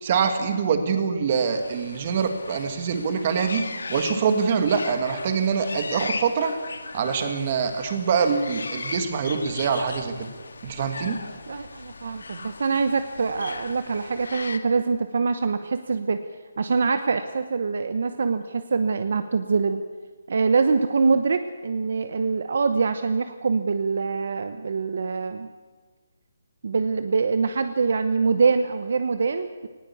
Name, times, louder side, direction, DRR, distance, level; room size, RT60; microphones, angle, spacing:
voice 1, 0.0-3.6 3.9-6.5 6.9-10.3 10.6-11.2, right 6 dB, 25° right, 7 dB, 1.7 m, -24 dB
sound 1, 1.3-14.6, left 3 dB, 75° left, 1.8 m, -38 dB
voice 2, 11.5-16.2 16.6-19.8 20.3-25.5 26.6-29.7, right 4 dB, 50° right, 10 dB, 0.9 m, -24 dB
19.0 x 17.0 x 8.5 m, 1.4 s
hypercardioid pair, 180°, 0 cm